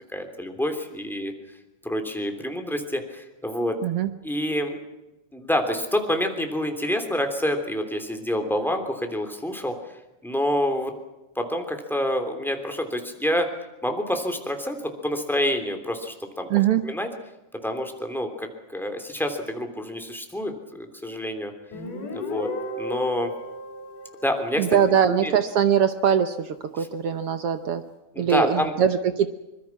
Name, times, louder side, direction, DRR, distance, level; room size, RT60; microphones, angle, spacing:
voice 1, 0.1-1.3 1.8-3.8 4.2-4.8 5.3-9.7 10.2-10.9 11.4-13.5 13.8-16.5 16.8-17.1 17.6-21.5 22.1-23.3 24.2-24.8 25.1-25.3 26.8-26.9 28.1-28.7, equal, ahead, 5 dB, 2.7 m, -27 dB
voice 2, 16.5-16.8 24.6-27.8 28.2-29.3, right 8 dB, 65° right, 10 dB, 1.5 m, -22 dB
Guitar, 21.7-25.2, left 1 dB, 80° left, 5.2 m, -35 dB
25.0 x 22.5 x 5.9 m, 0.99 s
omnidirectional pair, 3.6 m